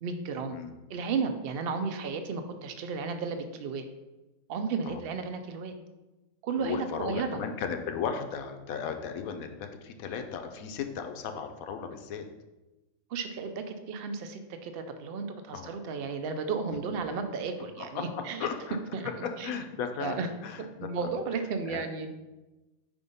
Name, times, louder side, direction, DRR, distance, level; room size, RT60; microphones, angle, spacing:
voice 1, 0.0-0.6 0.9-3.8 4.5-5.7 6.4-7.4 13.1-18.5 18.9-19.6 20.0-20.3 20.6-22.1, right 5 dB, 65° right, 7 dB, 0.6 m, -33 dB
voice 2, 6.6-12.3 15.5-15.7 17.8-18.8 19.2-20.9 21.7-21.8, left 6 dB, 75° left, 6 dB, 1.0 m, -36 dB
5.2 x 3.5 x 5.3 m, 1.1 s
omnidirectional pair, 1.6 m